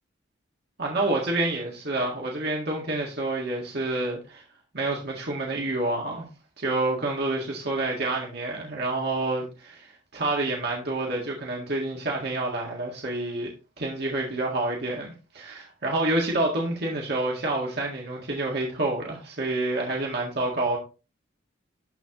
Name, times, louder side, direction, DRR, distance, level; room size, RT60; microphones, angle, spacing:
voice 1, 0.8-4.4 4.7-6.3 6.6-13.5 13.8-20.8, right 2 dB, 55° right, 1.8 m, -28 dB
12.5 x 4.2 x 3.0 m
head